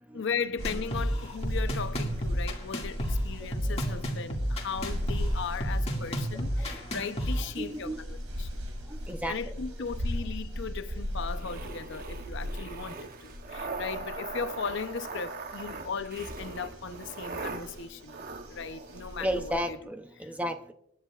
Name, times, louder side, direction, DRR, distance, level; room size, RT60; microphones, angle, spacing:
voice 1, 0.1-8.6 9.3-19.8 20.2-20.3, left 5 dB, 55° left, 0.7 m, -37 dB
sound 1, 0.6-7.4, equal, 30° left, 2.1 m, -31 dB
sound 2, 0.6-19.5, equal, 80° right, 2.5 m, -39 dB
voice 2, 7.6-8.0 8.9-9.3 19.2-20.7, equal, 5° right, 0.6 m, -33 dB
sound 3, 11.3-19.8, right 3 dB, 40° right, 0.9 m, -41 dB
26.5 x 10.5 x 2.4 m
head